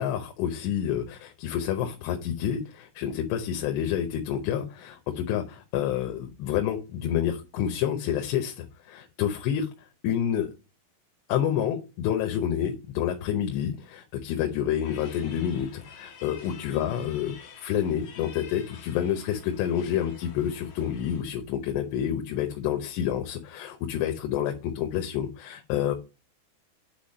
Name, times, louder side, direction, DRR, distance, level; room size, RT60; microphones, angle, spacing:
voice 1, 0.0-10.5 11.3-26.0, left 10 dB, 85° left, 5 dB, 3.0 m, -28 dB
sound 1, 14.8-21.2, left 6 dB, 55° left, 2.2 m, -49 dB
9.0 x 4.3 x 5.3 m, 0.30 s
omnidirectional pair, 4.9 m